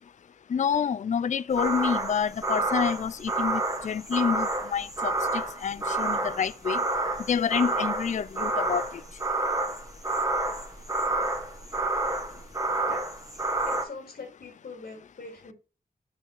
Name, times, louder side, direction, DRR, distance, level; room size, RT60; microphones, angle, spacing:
voice 1, 0.5-6.8 7.3-8.8, left 7 dB, 50° left, 0.4 m, -28 dB
sound 1, 1.6-13.8, right 2 dB, 20° right, 1.4 m, -29 dB
voice 2, 13.6-15.5, left 4 dB, 80° left, 3.4 m, -43 dB
7.1 x 5.2 x 4.7 m
wide cardioid pair, 70°, 16 cm